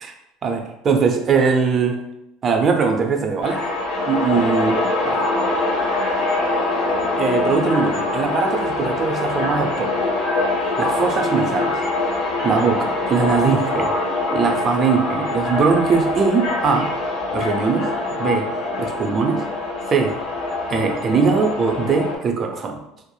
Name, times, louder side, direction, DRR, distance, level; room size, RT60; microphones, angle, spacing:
voice 1, 0.4-2.0 2.4-3.6 4.0-4.8 5.0-5.2 7.2-10.0 10.8-11.8 12.4-13.9 14.3-16.9 17.3-17.9 18.2-18.5 18.8-19.4 19.9-20.2 20.7-22.8, right 5 dB, 40° right, 4 dB, 0.4 m, -20 dB
sound 1, 3.4-22.2, left 2 dB, 75° left, 0.9 m, -23 dB
3.0 x 2.0 x 2.2 m, 0.84 s
supercardioid pair, 90°, 0 cm